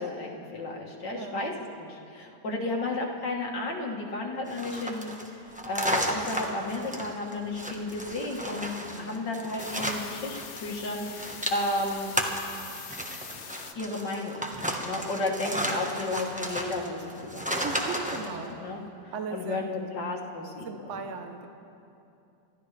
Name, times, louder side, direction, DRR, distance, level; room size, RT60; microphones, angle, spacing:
voice 1, 0.0-1.5 1.8-12.2 13.8-14.5 14.8-17.6 18.1-21.0, left 2 dB, 85° left, -1 dB, 2.2 m, -33 dB
voice 2, 1.1-1.4 2.4-2.7 8.9-9.2 15.4-15.8 17.6-18.5 19.1-19.7 20.6-21.5, right 4 dB, 50° right, 5 dB, 1.1 m, -38 dB
sound 1, 4.5-10.6 10.9-18.3, equal, 5° right, 0.9 m, -33 dB
sound 2, 9.6-13.7, left 8 dB, 65° left, 0.7 m, -43 dB
30.0 x 13.5 x 3.3 m, 2.7 s
omnidirectional pair, 1.9 m